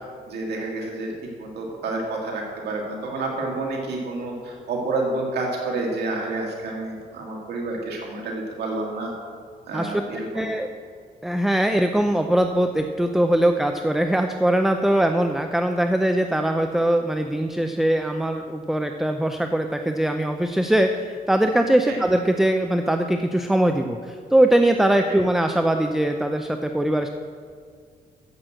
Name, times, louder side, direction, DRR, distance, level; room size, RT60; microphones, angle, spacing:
voice 1, 0.3-1.1 1.4-9.1 9.7-10.5 21.9-22.0, right 2 dB, 80° right, -1 dB, 1.9 m, -29 dB
voice 2, 10.3-10.7 11.2-27.1, right 1 dB, ahead, 5 dB, 0.5 m, -21 dB
9.5 x 7.8 x 7.6 m, 2.1 s
cardioid pair, 115°, 17 cm